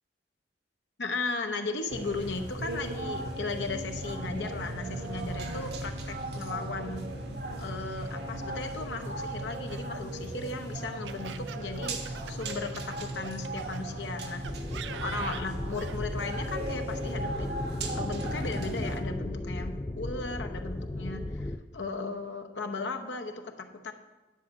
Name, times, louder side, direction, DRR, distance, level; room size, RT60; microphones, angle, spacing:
voice 1, 1.0-7.1 7.6-14.4 14.9-17.6 17.9-23.9, left 3 dB, 75° left, 5 dB, 0.9 m, -36 dB
sound 1, 1.9-19.0, right 1 dB, 65° right, 1.2 m, -37 dB
Laughter, 9.4-13.8 14.4-16.0, right 7 dB, 80° right, 0.4 m, -44 dB
sound 2, 14.4-21.6, left 1 dB, 15° left, 0.3 m, -36 dB
10.0 x 4.7 x 7.2 m, 1.2 s
head